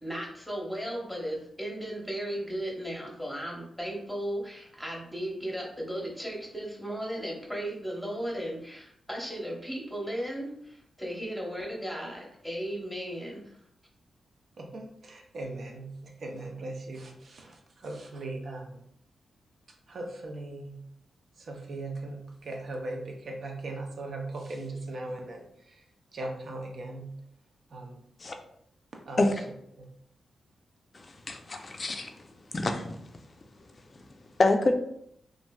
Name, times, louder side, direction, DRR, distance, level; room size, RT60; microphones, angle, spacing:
voice 1, 0.0-13.6, equal, ahead, -2 dB, 0.9 m, -36 dB
voice 2, 14.6-18.8 19.9-20.8 21.4-25.8 26.1-27.1 27.7-28.0 29.1-29.4 29.8-29.9, right 2 dB, 65° right, 1 dB, 0.5 m, -39 dB
voice 3, 31.3-32.1 32.5-32.9 34.4-34.7, left 2 dB, 40° left, 5 dB, 0.4 m, -25 dB
3.1 x 2.5 x 2.2 m, 0.71 s
cardioid pair, 90°, 0 cm